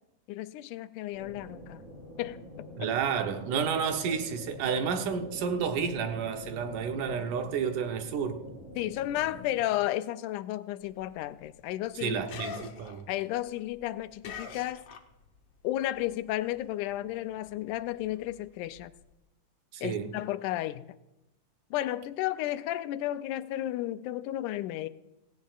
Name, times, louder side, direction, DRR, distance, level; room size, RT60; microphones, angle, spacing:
voice 1, 0.3-1.8 2.2-2.9 8.8-12.2 13.1-14.8 15.6-18.9 19.8-21.0 21.7-24.9, left 14 dB, 85° left, 2.1 m, -33 dB
sound 1, 1.1-9.5, left 1 dB, 10° left, 6.0 m, -45 dB
voice 2, 2.8-8.4 12.0-13.1 19.7-20.1, right 6 dB, 90° right, 2.6 m, -31 dB
sound 2, 10.8-15.5 15.8-19.1, left 7 dB, 60° left, 1.7 m, -46 dB
17.5 x 17.0 x 2.4 m
omnidirectional pair, 3.5 m